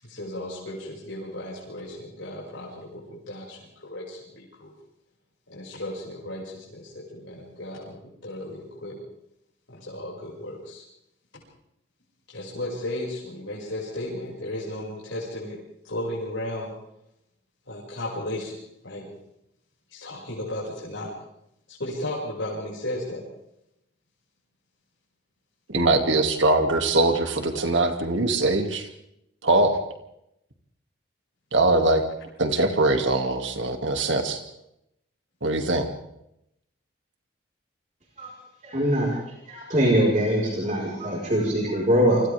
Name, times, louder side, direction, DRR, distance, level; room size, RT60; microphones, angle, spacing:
voice 1, 0.0-4.7 5.5-9.0 9.7-10.8 12.3-15.6 15.8-16.7 17.7-18.5 18.8-19.1 19.9-21.1 21.7-23.2, left 1 dB, 80° left, -6 dB, 6.3 m, -35 dB
voice 2, 25.7-28.9 29.4-29.8 31.5-32.0 32.4-34.4 35.4-35.9, right 2 dB, 75° right, 5 dB, 2.6 m, -22 dB
voice 3, 38.6-39.1 39.5-42.2, equal, 40° right, -3 dB, 4.8 m, -22 dB
29.5 x 24.5 x 3.6 m, 0.81 s
head